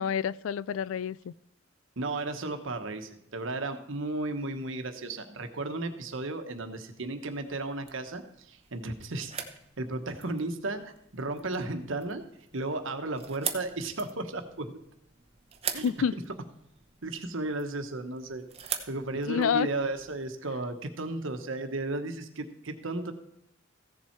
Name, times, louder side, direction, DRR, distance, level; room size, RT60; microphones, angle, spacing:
voice 1, 0.0-1.3 15.8-16.1 19.3-19.7, left 7 dB, 75° left, 0.3 m, -28 dB
voice 2, 2.0-9.3 9.8-12.2 12.5-14.8 15.7-15.9 17.0-18.4 18.9-23.1, right 2 dB, 70° right, 1.1 m, -34 dB
sound 1, 7.3-20.2, right 8 dB, 30° right, 1.0 m, -43 dB
15.0 x 7.2 x 4.5 m
head